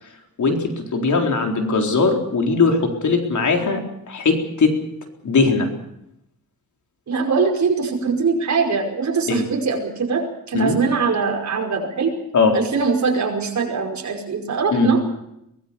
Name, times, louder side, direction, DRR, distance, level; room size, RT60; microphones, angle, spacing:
voice 1, 0.4-3.8 4.1-4.8 5.2-5.7 9.3-9.4 10.5-10.8 12.3-12.5 14.7-14.9, left 4 dB, 55° left, 3 dB, 4.1 m, -19 dB
voice 2, 7.1-12.2 12.5-15.0, right 4 dB, 50° right, 2 dB, 5.4 m, -22 dB
23.5 x 19.0 x 7.1 m, 0.81 s
wide cardioid pair, 150°, 35 cm